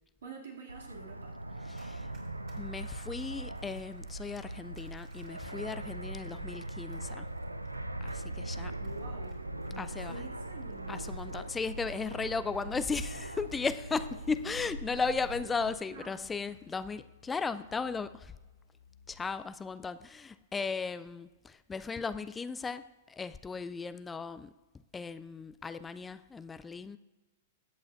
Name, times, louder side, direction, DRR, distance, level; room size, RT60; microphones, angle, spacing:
voice 1, 0.2-1.4 8.8-9.3 9.6-10.9 15.9-16.3, right 3 dB, 60° right, 0 dB, 2.2 m, -47 dB
Fixed-wing aircraft airplane, 0.7-15.8, right 1 dB, 85° right, 0.4 m, -41 dB
voice 2, 1.6-2.1 2.6-7.3 8.0-8.7 9.8-10.2 10.9-18.3 19.1-24.5 24.9-27.0, left 4 dB, 15° left, 13 dB, 0.3 m, -36 dB
Run, 1.7-13.3 13.6-17.0 17.3-17.6, right 4 dB, 35° right, 3.2 m, -66 dB
sound 1, 8.7-19.4, left 6 dB, 85° left, 0.8 m, -59 dB
20.5 x 8.4 x 2.4 m, 1.2 s
figure-of-eight pair, 100°, 0 cm